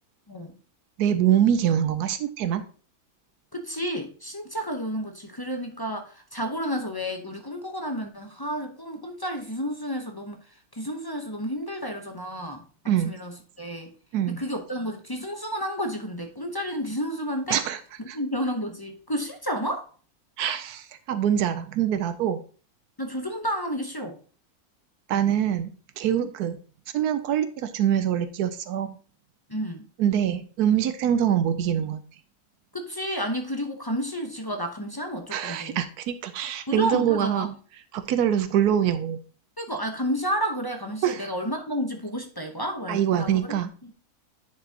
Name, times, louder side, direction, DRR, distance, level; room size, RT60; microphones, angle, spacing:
voice 1, 1.0-2.6 12.9-13.1 14.1-14.4 17.5-17.8 18.1-18.2 20.4-22.4 25.1-25.7 26.0-26.6 26.9-29.0 30.0-32.0 35.3-37.5 37.9-39.2 41.0-41.3 42.9-43.7, right 10 dB, 85° right, 1.1 m, -24 dB
voice 2, 3.5-10.4 10.7-12.6 13.0-13.9 14.3-17.6 18.0-19.9 23.0-24.2 29.5-29.9 32.7-35.8 36.7-37.5 39.6-43.6 43.8-43.9, equal, 20° left, 0.6 m, -31 dB
10.5 x 4.9 x 2.8 m
omnidirectional pair, 1.6 m